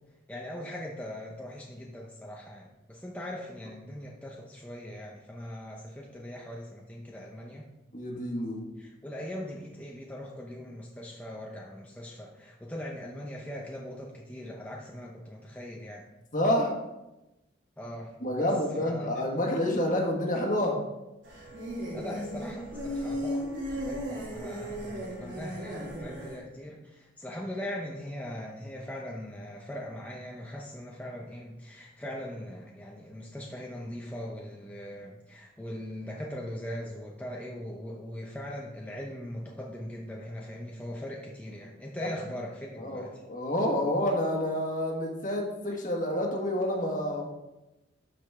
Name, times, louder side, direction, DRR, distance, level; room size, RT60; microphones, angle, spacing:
voice 1, 0.3-7.7 8.8-16.0 17.8-18.5 18.8-19.4 21.9-43.2, left 1 dB, 10° left, -2 dB, 0.6 m, -40 dB
voice 2, 7.9-8.7 16.3-16.7 18.2-20.8 42.0-42.1 42.8-47.3, left 1 dB, 40° left, 1 dB, 1.5 m, -28 dB
sound 1, 21.2-26.4, equal, 85° right, 2.9 m, -35 dB
12.0 x 5.1 x 3.6 m, 0.99 s
head